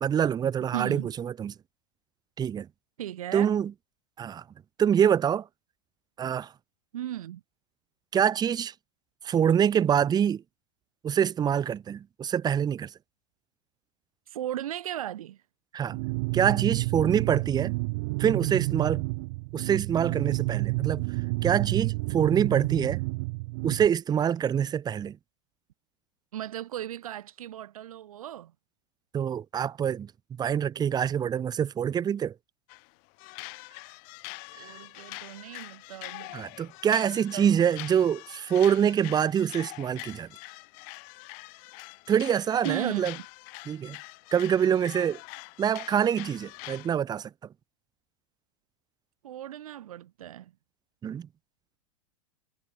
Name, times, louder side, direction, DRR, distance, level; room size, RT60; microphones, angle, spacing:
voice 1, 0.0-1.5 2.4-2.7 3.3-3.7 4.2-4.4 4.8-5.5 6.2-6.5 8.1-8.7 9.2-10.4 11.0-12.9 15.7-16.0 16.3-17.7 18.2-19.1 19.5-21.1 21.4-23.0 23.6-25.2 29.1-30.1 30.4-32.3 34.6-34.8 36.3-40.3 42.1-43.1 43.7-44.0 44.3-45.2 45.6-47.3 51.0-51.3, right 8 dB, 20° right, 0.9 m, -25 dB
voice 2, 0.7-1.1 3.0-3.5 6.9-7.4 14.3-15.4 26.3-28.5 34.5-36.3 37.3-37.6 42.6-43.2 49.2-50.5, right 12 dB, 75° right, 0.6 m, -36 dB
sound 1, 15.9-23.9, right 26 dB, 55° right, 1.1 m, -29 dB
sound 2, 32.7-32.9 33.2-46.9, left 37 dB, 50° left, 5.2 m, -44 dB
hypercardioid pair, 100°, 18 cm